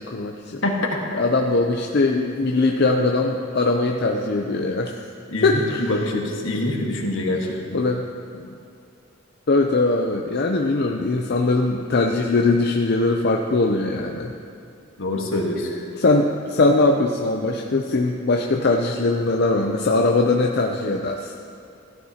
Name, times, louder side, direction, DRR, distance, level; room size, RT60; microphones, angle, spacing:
voice 1, 0.0-0.6 1.1-5.0 5.4-5.9 7.7-8.0 9.5-14.3 16.0-21.3, left 2 dB, 55° left, 2 dB, 0.6 m, -21 dB
voice 2, 0.6-1.2 5.3-7.8 15.0-15.7, left 1 dB, 75° left, 0 dB, 1.6 m, -25 dB
16.0 x 12.5 x 2.9 m, 2.6 s
head